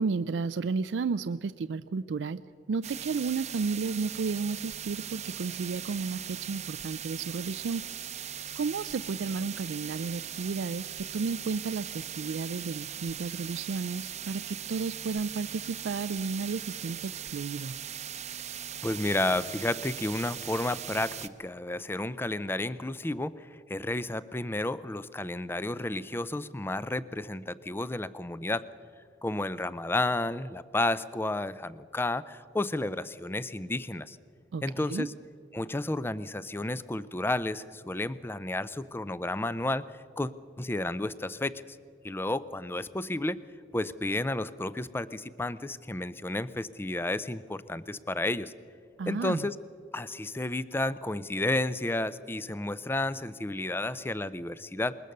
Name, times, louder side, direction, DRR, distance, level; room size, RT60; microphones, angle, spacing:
voice 1, 0.0-2.4 2.7-7.8 8.5-17.8 34.5-35.1 49.0-49.5, right 4 dB, 75° right, 14 dB, 0.4 m, -32 dB
sound 1, 2.8-21.3, right 9 dB, 40° right, 0.7 m, -40 dB
voice 2, 18.8-28.6 29.2-34.2 34.6-35.1 35.5-39.8 40.2-40.3 40.6-41.6 42.0-43.4 43.7-48.5 49.1-49.6 49.9-55.0, left 2 dB, 15° left, 16 dB, 0.5 m, -31 dB
21.0 x 20.5 x 6.6 m, 2.4 s
head